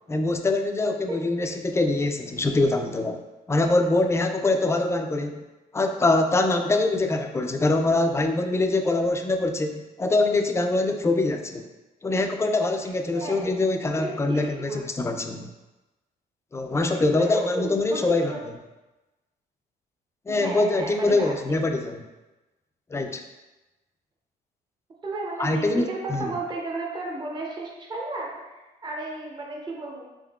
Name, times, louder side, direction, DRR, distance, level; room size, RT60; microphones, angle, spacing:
voice 1, 0.1-3.2 3.5-5.4 5.7-11.7 12.0-15.5 16.5-18.3 20.3-22.0 22.9-23.2 25.4-25.8 26.1-26.2, left 2 dB, 15° left, 5 dB, 0.4 m, -24 dB
voice 2, 1.1-1.5 13.1-13.5 14.0-14.8 16.9-18.0 18.3-18.5 20.4-21.3 25.0-30.0, right 2 dB, 25° right, -1 dB, 0.7 m, -33 dB
3.6 x 3.5 x 2.3 m, 1.1 s
cardioid pair, 85°, 17 cm